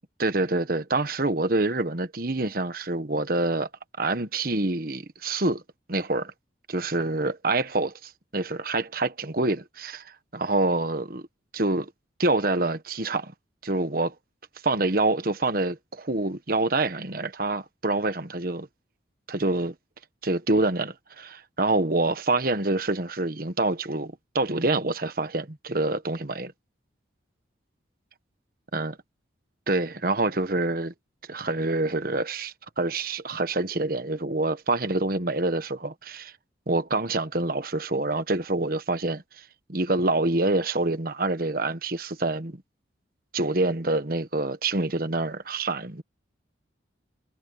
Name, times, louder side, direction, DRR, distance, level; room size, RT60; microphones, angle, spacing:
voice 1, 0.2-3.7 4.0-5.6 5.9-6.3 6.7-11.2 11.5-11.9 12.2-13.3 13.6-14.1 14.6-18.7 19.3-19.7 20.2-26.5 28.7-28.9 29.7-30.9 31.3-36.3 36.7-42.6 43.3-46.0, right 2 dB, 50° right, 1.3 m, -26 dB
head